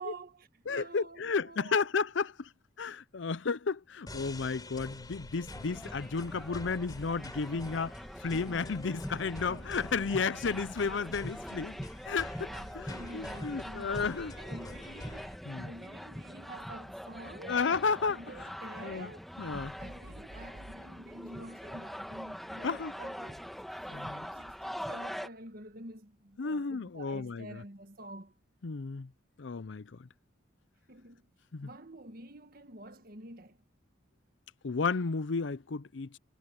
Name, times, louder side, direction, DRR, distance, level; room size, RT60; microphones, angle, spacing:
voice 1, 0.0-1.9 9.4-9.7 12.4-17.6 17.9-19.3 19.8-23.5 23.9-28.3 30.9-31.3 31.6-33.6, right 2 dB, 50° right, 1.6 m, -49 dB
voice 2, 0.7-2.5 2.8-7.9 8.2-11.8 12.1-12.5 12.7-14.4 15.5-15.7 17.5-18.2 18.8-19.1 19.4-19.8 22.6-22.9 23.9-24.3 26.4-27.6 28.6-29.1 29.4-30.1 31.5-31.7 34.6-36.2, left 5 dB, 75° left, 0.6 m, -33 dB
sound 1, 4.1-15.4, left 1 dB, 20° left, 3.8 m, -47 dB
sound 2, 5.5-25.3, equal, ahead, 1.2 m, -43 dB
sound 3, 19.5-20.8, right 1 dB, 85° right, 1.7 m, -50 dB
head